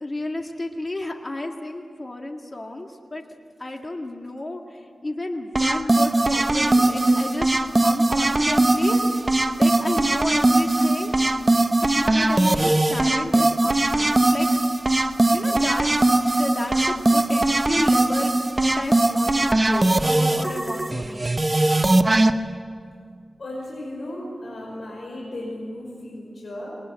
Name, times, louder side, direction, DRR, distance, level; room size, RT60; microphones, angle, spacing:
voice 1, 0.0-3.2 3.6-4.6 5.0-9.2 9.6-11.1 11.8-14.5 15.3-15.9 16.3-21.5, left 1 dB, 30° left, 3 dB, 2.0 m, -31 dB
sound 1, 5.5-22.3, right 2 dB, 25° right, 0.9 m, -20 dB
voice 2, 23.4-26.8, left 1 dB, 60° left, -3 dB, 5.5 m, -35 dB
22.0 x 20.0 x 9.0 m, 2.2 s
wide cardioid pair, 85°, 0 cm